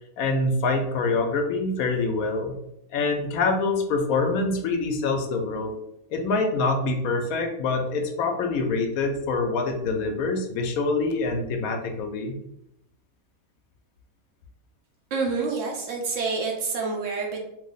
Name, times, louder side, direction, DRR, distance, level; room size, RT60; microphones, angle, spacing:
voice 1, 0.2-2.6 2.9-5.7 6.1-12.3, left 3 dB, 80° left, 4 dB, 1.0 m, -25 dB
voice 2, 15.1-17.4, right 4 dB, 65° right, 1 dB, 1.0 m, -27 dB
2.9 x 2.0 x 3.8 m, 0.79 s
omnidirectional pair, 1.5 m